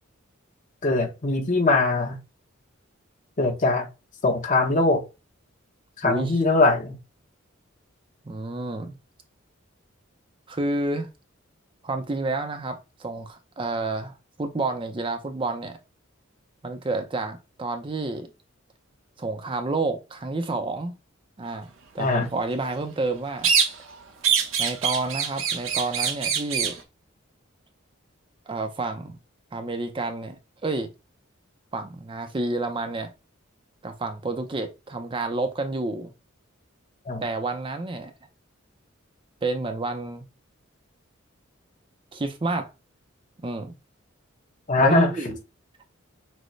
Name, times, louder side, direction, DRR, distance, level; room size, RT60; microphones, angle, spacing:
voice 1, 0.8-2.2 3.4-3.9 4.2-5.0 6.0-7.0 22.0-22.3 37.1-37.2 44.7-45.1, left 2 dB, 40° left, 0.8 m, -21 dB
voice 2, 6.0-6.3 8.3-9.0 10.5-11.1 11.8-15.8 16.6-18.3 19.2-21.0 21.4-21.7 21.9-23.5 24.6-26.8 28.5-29.2 29.5-30.9 31.7-33.1 33.8-36.1 37.2-38.1 39.4-40.3 42.1-42.7 43.4-43.7 44.8-45.4, right 2 dB, 25° right, 0.5 m, -29 dB
sound 1, 23.4-24.0 24.2-26.8, right 7 dB, 70° right, 0.9 m, -24 dB
6.1 x 2.1 x 3.1 m
head